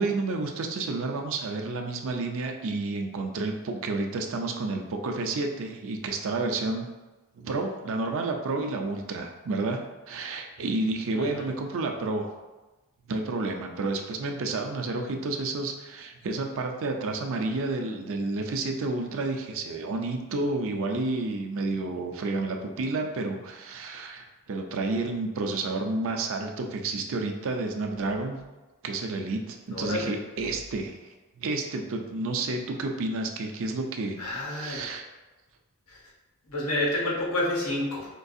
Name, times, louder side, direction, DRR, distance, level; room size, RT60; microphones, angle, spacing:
voice 1, 0.0-6.9 7.4-9.8 10.1-12.3 13.1-28.4 28.8-31.1 31.4-34.2 34.5-35.0, right 3 dB, 65° right, 4 dB, 0.4 m, -30 dB
voice 2, 29.7-30.1 34.2-34.9 35.9-36.0 36.5-38.1, left 1 dB, 85° left, -3 dB, 1.0 m, -29 dB
4.5 x 2.4 x 2.6 m, 1.1 s
head